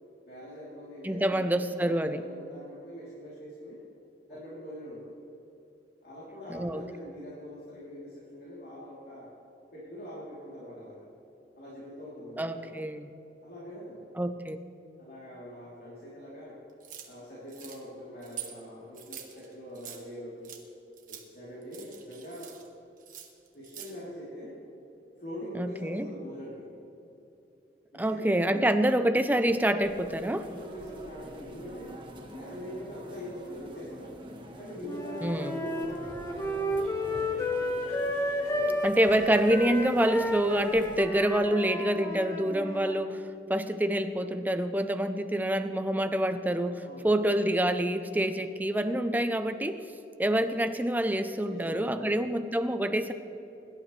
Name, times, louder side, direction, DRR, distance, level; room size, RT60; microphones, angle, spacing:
voice 1, 0.2-1.4 1.8-3.8 4.3-5.2 6.0-9.3 9.7-11.1 11.6-12.7 13.4-14.0 15.0-16.6 17.0-20.5 21.1-22.5 23.5-24.5 25.2-26.7 27.9-28.6 30.4-31.9 32.3-34.2 34.6-38.0 38.4-38.8 46.8-47.1 51.5-52.2, equal, 60° left, -8 dB, 3.3 m, -43 dB
voice 2, 1.0-2.2 6.5-6.8 12.4-13.1 14.2-14.6 25.6-26.1 27.9-30.5 35.2-35.6 38.8-43.2 43.5-49.8 50.2-53.1, right 1 dB, 10° right, 9 dB, 0.6 m, -27 dB
sound 1, 16.8-17.1 17.5-17.8 18.2-18.5 18.9-20.0 20.4-20.6 21.0-21.2 21.6-22.7 23.0-23.9, right 10 dB, 50° right, 1.5 m, -44 dB
sound 2, 29.8-41.0, right 1 dB, 30° right, 1.4 m, -47 dB
Wind instrument woodwind instrument, 34.8-43.0, left 1 dB, 15° left, 1.0 m, -32 dB
23.0 x 12.0 x 3.3 m, 2.9 s
head